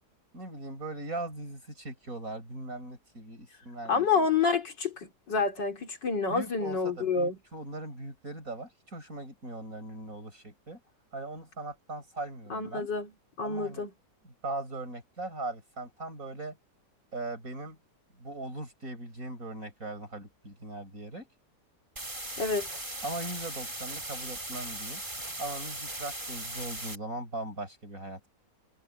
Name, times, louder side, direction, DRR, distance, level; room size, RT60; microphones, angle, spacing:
voice 1, 0.3-4.1 6.3-10.8 11.1-12.9 13.4-13.9 14.2-16.6 17.1-17.8 18.2-21.3 23.0-25.0 25.4-28.3, right 2 dB, 50° right, 6.7 m, -39 dB
voice 2, 3.9-7.4 12.5-13.1 13.4-13.9 22.4-22.8, left 5 dB, 90° left, 4.1 m, -28 dB
sound 1, 22.0-27.0, right 1 dB, 25° right, 5.4 m, -38 dB
omnidirectional pair, 1.9 m